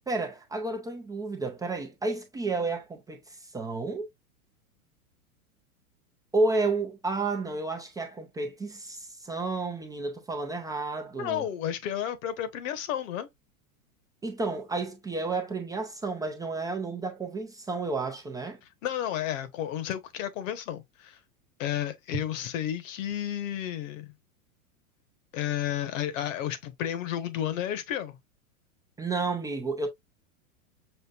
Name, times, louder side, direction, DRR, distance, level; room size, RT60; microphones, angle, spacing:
voice 1, 0.0-4.1 6.3-11.5 14.2-18.6 29.0-29.9, right 3 dB, 10° right, 0.5 m, -31 dB
voice 2, 11.1-13.3 18.8-21.2 21.6-24.1 25.3-28.2, left 11 dB, 60° left, 1.3 m, -32 dB
6.6 x 2.5 x 2.4 m
hypercardioid pair, 120°, 44 cm